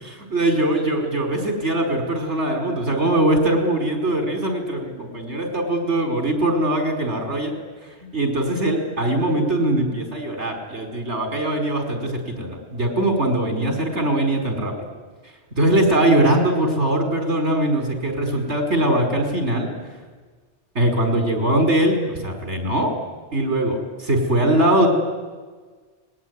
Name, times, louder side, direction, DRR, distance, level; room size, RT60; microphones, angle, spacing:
voice 1, 0.0-7.5 8.1-14.7 15.6-19.7 20.8-22.9 23.3-23.8 24.0-24.9, right 1 dB, 80° right, 3 dB, 5.2 m, -21 dB
30.0 x 20.5 x 9.6 m, 1.4 s
omnidirectional pair, 1.1 m